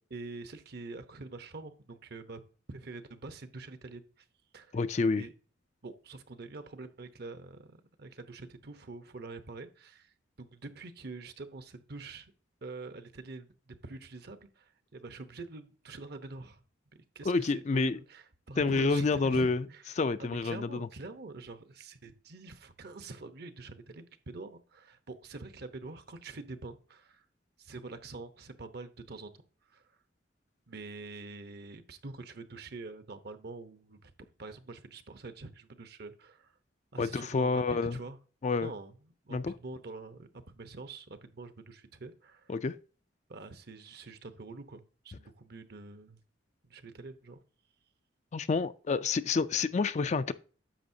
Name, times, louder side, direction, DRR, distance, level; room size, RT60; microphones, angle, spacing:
voice 1, 0.1-2.4 2.7-4.2 4.5-4.8 5.1-5.3 5.8-12.3 12.6-16.6 17.1-19.8 20.2-27.2 27.6-29.3 29.7-29.8 30.7-36.5 36.9-38.2 38.6-38.9 39.2-42.5 43.3-46.2 46.7-47.4, right 3 dB, 55° right, 0.9 m, -45 dB
voice 2, 4.7-5.2 17.2-18.0 18.6-19.6 19.9-20.9 37.0-38.0 38.4-38.7 39.3-39.5 42.5-42.8 48.3-50.3, left 4 dB, 35° left, 0.4 m, -28 dB
10.0 x 7.0 x 2.7 m
head